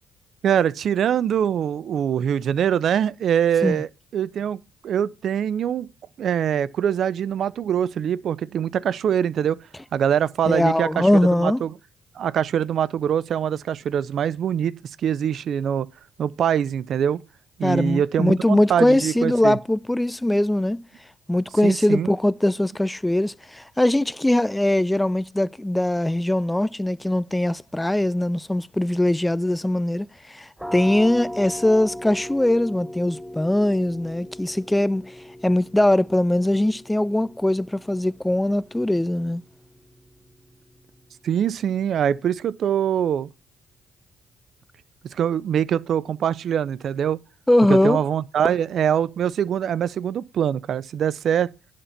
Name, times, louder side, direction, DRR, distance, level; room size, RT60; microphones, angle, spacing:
voice 1, 0.4-5.9 6.2-9.6 9.9-11.1 11.4-11.7 12.2-14.7 15.0-15.9 16.2-17.2 17.6-19.6 21.6-22.1 41.2-43.3 45.1-47.2 47.7-51.5, right 9 dB, 60° right, 0.5 m, -23 dB
voice 2, 10.5-11.6 17.6-20.8 21.3-35.1 35.4-39.4 47.5-48.0, left 1 dB, 10° left, 0.4 m, -21 dB
sound 1, 30.6-42.1, equal, 5° right, 0.9 m, -39 dB
11.0 x 4.3 x 5.7 m
supercardioid pair, 60°, 0 cm